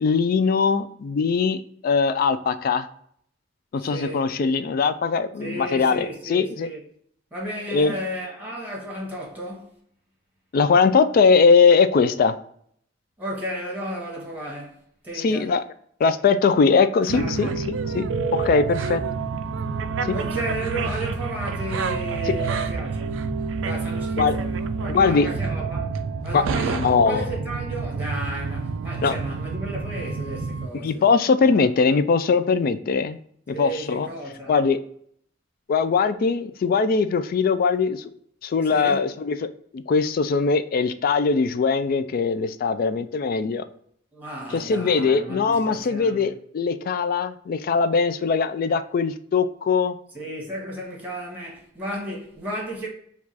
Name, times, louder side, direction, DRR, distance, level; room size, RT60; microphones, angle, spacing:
voice 1, 0.0-2.9 3.7-6.7 7.7-8.0 10.5-12.3 15.2-15.6 16.0-17.6 17.9-18.1 18.3-19.0 20.1-20.2 22.4-22.5 24.2-24.4 24.9-25.3 26.3-26.4 26.7-27.3 29.0-29.2 30.8-33.2 33.5-34.1 34.5-34.8 35.7-38.1 38.4-39.5 39.7-43.6 44.5-50.0, left 5 dB, 50° left, 0.3 m, -21 dB
voice 2, 3.8-4.2 5.4-6.8 7.3-9.8 13.2-15.5 17.1-17.5 20.1-23.3 23.6-24.5 24.8-25.9 26.2-31.0 31.4-31.7 33.5-34.6 38.7-39.1 44.1-46.3 50.1-52.9, right 1 dB, 10° right, 1.4 m, -33 dB
sound 1, 17.1-30.7, right 4 dB, 80° right, 0.4 m, -28 dB
4.6 x 2.4 x 4.0 m
head